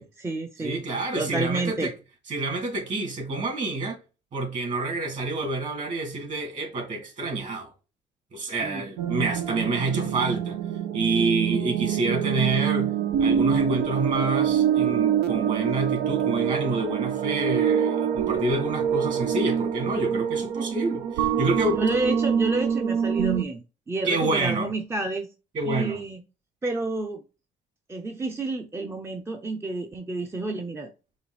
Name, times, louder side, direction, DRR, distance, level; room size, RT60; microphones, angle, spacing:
voice 1, 0.0-0.8 1.1-1.9 8.6-8.8 21.7-25.3 25.6-26.2 26.6-27.2 27.9-30.9, right 2 dB, 15° right, 0.5 m, -30 dB
voice 2, 0.6-1.9 2.3-4.0 4.3-7.7 8.3-10.6 10.9-12.9 13.2-21.8 24.0-24.7 25.5-26.0, right 3 dB, 45° right, 2.5 m, -28 dB
sound 1, 9.0-23.4, right 8 dB, 90° right, 0.7 m, -25 dB
5.1 x 2.5 x 3.9 m
cardioid pair, 110°, 17 cm